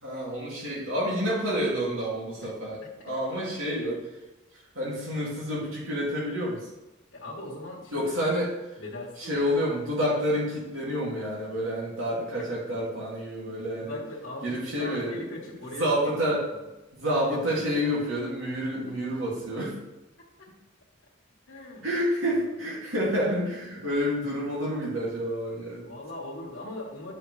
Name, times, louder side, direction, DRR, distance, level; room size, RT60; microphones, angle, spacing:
voice 1, 0.0-4.0 4.8-6.6 7.9-8.5 9.2-14.0 14.4-15.2 15.8-16.5 16.9-19.7 21.8-25.8, equal, 90° right, -5 dB, 2.2 m, -28 dB
voice 2, 7.1-8.1 8.8-9.5 13.4-15.9 16.5-16.7 17.3-17.4 20.4-20.5 21.5-21.8 22.3-22.4 25.8-27.1, left 2 dB, 65° left, -6 dB, 1.4 m, -40 dB
8.5 x 5.0 x 3.2 m, 1.0 s
head